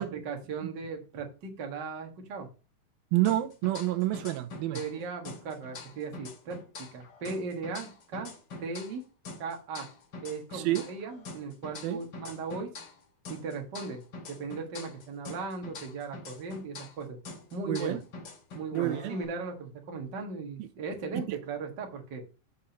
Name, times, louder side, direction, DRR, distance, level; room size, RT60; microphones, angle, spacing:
voice 1, 0.0-2.5 4.7-6.6 6.9-8.3 8.6-9.0 9.4-9.9 10.2-12.7 13.3-14.0 14.3-17.2 17.5-18.0 18.5-22.2, right 4 dB, 40° right, 1.7 m, -37 dB
voice 2, 3.1-4.8 10.5-10.9 11.8-12.0 17.7-18.0 18.7-19.2 20.6-20.7 21.3-21.4, right 16 dB, 85° right, 2.6 m, -29 dB
sound 1, 3.2-5.0 5.2-9.0 9.2-13.0 13.2-17.0 17.2-19.2, left 3 dB, 60° left, 1.0 m, -45 dB
7.1 x 5.2 x 7.0 m
omnidirectional pair, 4.2 m